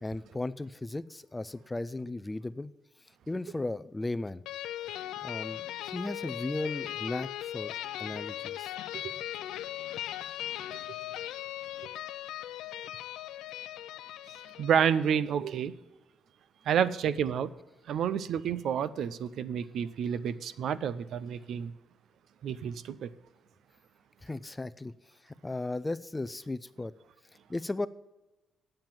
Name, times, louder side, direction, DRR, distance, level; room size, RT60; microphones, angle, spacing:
voice 1, 0.0-2.7 3.3-4.4 4.8-5.0 5.2-7.7 8.0-8.7 24.2-24.9 25.2-26.9 27.5-27.9, left 2 dB, 15° left, 15 dB, 0.5 m, -36 dB
sound 1, 4.5-15.2, left 13 dB, 90° left, 0.4 m, -39 dB
voice 2, 14.6-15.7 16.7-17.5 17.9-21.7 22.4-23.1, right 8 dB, 70° right, 15 dB, 0.5 m, -29 dB
8.8 x 7.8 x 7.3 m, 1.0 s
cardioid pair, 90°, 0 cm